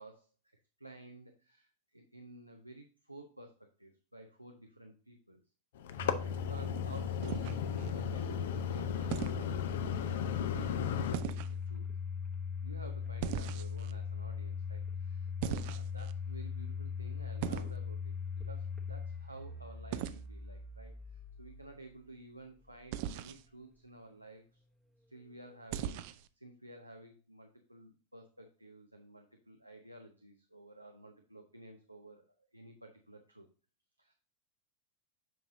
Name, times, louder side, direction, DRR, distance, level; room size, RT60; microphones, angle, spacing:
voice 1, 0.0-5.4 6.1-11.9 12.6-18.1 18.5-24.6 25.1-26.0 26.3-33.5 34.0-34.1, right 1 dB, 90° right, 4 dB, 0.7 m, -53 dB
sound 1, 5.7-11.2, left 8 dB, 55° left, 0.6 m, -37 dB
Domestic sounds home sounds, 6.0-22.9, left 6 dB, 5° right, 0.9 m, -40 dB
sound 2, 7.2-7.9 9.1-9.4 11.1-11.6 13.2-13.9 15.4-16.1 17.4-17.8 19.9-20.2 22.9-23.4 25.7-26.3, right 11 dB, 45° right, 0.4 m, -38 dB
7.6 x 5.4 x 2.7 m, 0.38 s
figure-of-eight pair, 90°, 0 cm